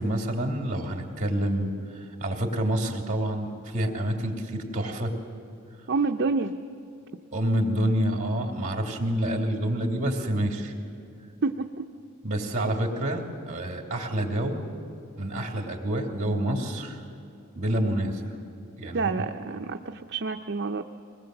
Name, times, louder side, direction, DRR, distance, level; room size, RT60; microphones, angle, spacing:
voice 1, 0.0-5.1 7.3-10.7 12.2-14.6 15.2-17.0 17.6-18.4 18.8-19.1, right 1 dB, 35° right, 2 dB, 2.8 m, -28 dB
voice 2, 5.9-6.5 11.4-11.8 18.9-20.8, right 4 dB, 55° right, 5 dB, 0.6 m, -28 dB
23.5 x 20.0 x 7.8 m, 2.7 s
head